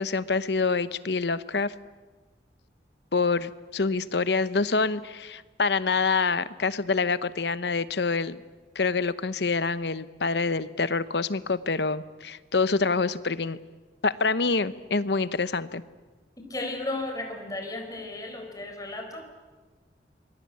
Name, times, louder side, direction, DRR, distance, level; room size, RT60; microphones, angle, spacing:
voice 1, 0.0-1.7 3.1-8.4 8.7-13.6 14.0-15.8, left 4 dB, 75° left, 15 dB, 0.9 m, -26 dB
voice 2, 16.4-19.2, left 2 dB, 20° left, 3 dB, 4.2 m, -34 dB
26.5 x 21.5 x 8.7 m, 1.3 s
head